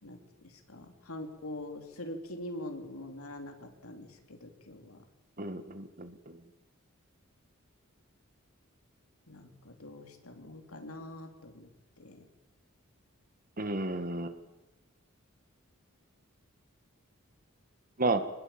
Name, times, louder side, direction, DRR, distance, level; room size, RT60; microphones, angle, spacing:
voice 1, 0.0-5.0 9.3-11.7 12.0-12.3, left 1 dB, 90° left, 4 dB, 3.7 m, -44 dB
voice 2, 5.4-6.4 13.6-14.3 18.0-18.2, right 2 dB, 40° right, 9 dB, 1.9 m, -32 dB
26.0 x 20.0 x 9.0 m, 1.1 s
head